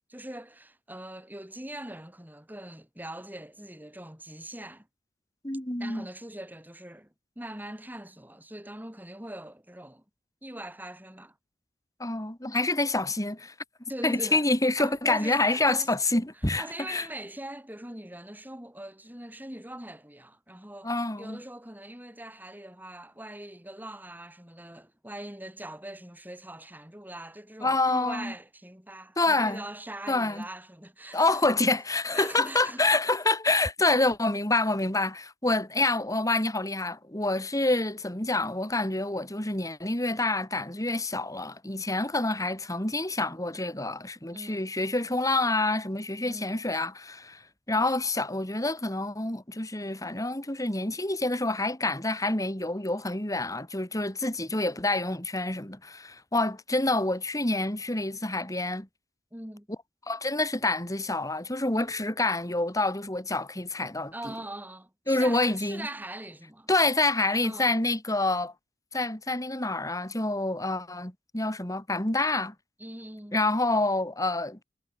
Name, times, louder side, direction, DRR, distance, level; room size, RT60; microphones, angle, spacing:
voice 1, 0.1-4.9 5.8-10.0 10.4-11.4 13.9-14.5 14.8-15.9 16.6-20.9 21.2-31.3 32.1-32.8 44.3-44.7 46.2-46.5 59.3-59.7 64.1-66.7 67.4-67.8 72.8-73.4, right 1 dB, 10° right, 7.6 m, -42 dB
voice 2, 5.4-6.1 12.0-13.5 14.0-17.1 20.8-21.4 27.6-28.3 29.2-29.6 30.1-30.4 31.1-58.9 60.1-64.3 65.1-65.9 66.7-68.5 68.9-72.5 73.3-74.6, left 2 dB, 20° left, 3.3 m, -27 dB
head